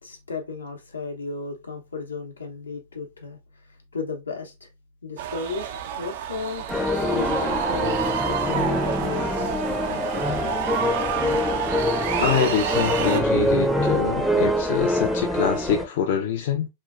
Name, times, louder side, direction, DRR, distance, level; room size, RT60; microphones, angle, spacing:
voice 1, 0.0-3.4 3.9-4.7 5.0-6.6 7.1-9.6 9.8-10.3, left 4 dB, 85° left, 0.8 m, -34 dB
sound 1, 5.2-13.2, right 9 dB, 60° right, 0.4 m, -29 dB
sound 2, 6.7-15.9, equal, ahead, 0.5 m, -24 dB
voice 2, 12.2-16.7, left 7 dB, 60° left, 0.4 m, -25 dB
3.1 x 2.2 x 2.4 m
hypercardioid pair, 100°, 0 cm